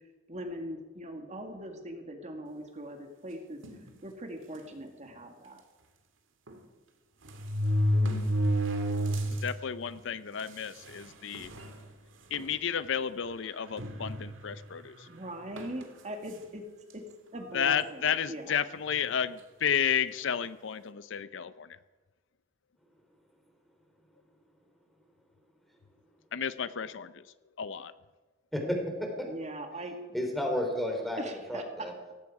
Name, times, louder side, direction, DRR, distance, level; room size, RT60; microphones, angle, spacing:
voice 1, 0.3-3.6 4.0-5.6 15.1-16.6 16.9-17.0 17.3-18.6 29.3-30.0 31.2-32.1, right 1 dB, 35° right, 4 dB, 1.9 m, -41 dB
sound 1, 3.6-3.9 4.7-4.8 5.1-5.2 6.5-6.6 7.2-9.5 10.0-10.1 10.9-11.0 11.3-11.7 12.3-12.5 13.8-14.6 15.6-15.8, equal, 75° right, 2.1 m, -29 dB
voice 2, 9.4-11.5 12.3-15.1 17.5-21.7 26.3-27.1 27.6-27.9, left 8 dB, 70° left, 14 dB, 0.6 m, -32 dB
voice 3, 28.5-29.1 30.1-31.2 31.5-31.9, equal, ahead, 2 dB, 3.6 m, -31 dB
17.5 x 16.0 x 4.8 m, 1.3 s
head